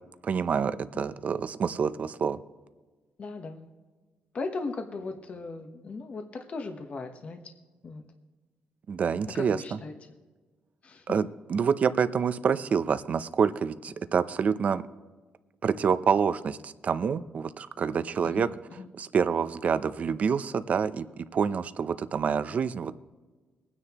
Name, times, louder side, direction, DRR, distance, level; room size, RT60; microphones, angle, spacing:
voice 1, 0.2-2.4 8.9-9.6 11.1-14.8 15.6-18.5 19.0-22.9, right 6 dB, 50° right, 13 dB, 0.6 m, -27 dB
voice 2, 3.2-3.7 4.3-7.4 7.8-8.0 9.3-10.2 10.8-11.2 18.2-18.9, left 3 dB, 45° left, 5 dB, 1.1 m, -38 dB
23.0 x 9.8 x 3.0 m, 1.3 s
cardioid pair, 110°, 3 cm